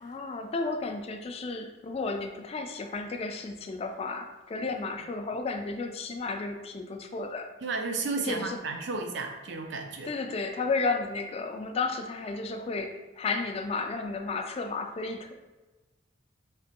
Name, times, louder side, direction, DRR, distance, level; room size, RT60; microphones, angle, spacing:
voice 1, 0.0-7.5 8.2-8.6 10.0-15.3, left 3 dB, 30° left, 5 dB, 0.3 m, -33 dB
voice 2, 7.6-10.1, right 3 dB, 65° right, 4 dB, 0.5 m, -33 dB
3.3 x 2.9 x 2.8 m, 1.2 s
head